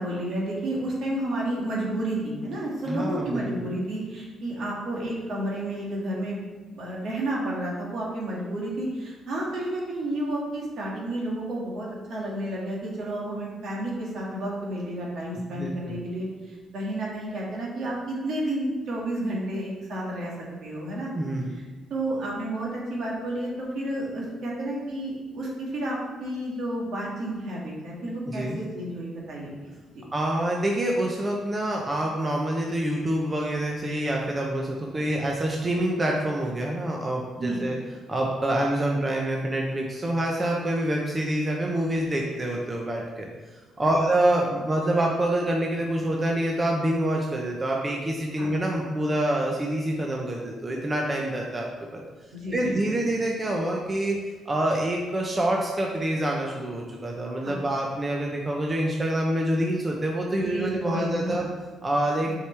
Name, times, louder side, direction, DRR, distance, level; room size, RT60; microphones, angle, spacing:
voice 1, 0.0-6.5 6.7-20.3 20.6-21.1 21.5-21.6 21.9-30.0 37.4-37.6 43.8-44.0 48.4-48.5 52.3-53.0 57.4-57.6 60.3-61.4, right 1 dB, 65° right, -3 dB, 1.9 m, -31 dB
voice 2, 2.8-3.7 15.5-16.0 21.1-21.6 28.3-28.6 30.1-37.8 38.1-43.3 43.8-52.0 52.5-54.2 54.5-61.5 61.8-62.3, right 1 dB, 25° right, -1 dB, 0.8 m, -26 dB
6.4 x 4.8 x 3.4 m, 1.3 s
cardioid pair, 90°, 0 cm